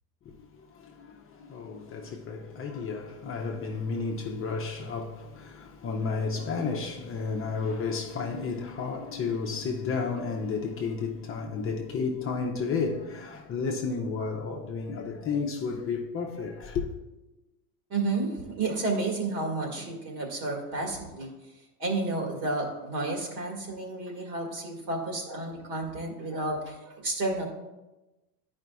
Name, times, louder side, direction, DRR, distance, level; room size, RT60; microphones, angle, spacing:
voice 1, 0.2-16.9, left 4 dB, 25° left, 0.7 m, -32 dB
voice 2, 17.9-21.3 21.8-27.5, right 2 dB, 50° right, 1.9 m, -31 dB
10.5 x 5.1 x 2.3 m
supercardioid pair, 115°, 48 cm